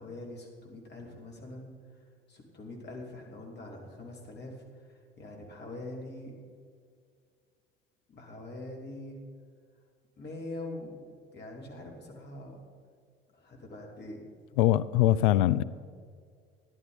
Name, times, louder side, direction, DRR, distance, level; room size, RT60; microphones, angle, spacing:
voice 1, 0.0-2.0 2.3-6.3 8.1-9.2 10.2-11.0 11.3-12.6 13.3-14.2, left 2 dB, 35° left, 0 dB, 2.8 m, -43 dB
voice 2, 14.6-15.6, left 13 dB, 60° left, 17 dB, 0.4 m, -22 dB
14.0 x 11.0 x 4.0 m, 2.1 s
figure-of-eight pair, 55°, 29 cm